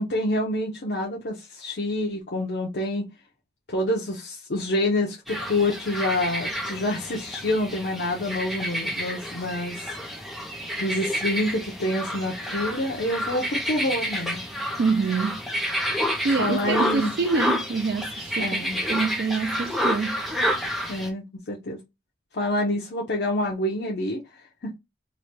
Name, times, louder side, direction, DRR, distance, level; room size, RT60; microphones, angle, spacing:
voice 1, 0.0-3.1 3.7-9.9 10.8-14.4 16.4-17.1 18.4-18.8 20.9-21.8 22.3-24.2 24.6-24.7, left 1 dB, 75° left, 0.7 m, -27 dB
sound 1, 5.3-21.1, equal, ahead, 0.6 m, -29 dB
voice 2, 14.8-15.4 16.2-18.6 18.9-20.2, right 4 dB, 60° right, 0.4 m, -26 dB
3.1 x 2.2 x 4.1 m
head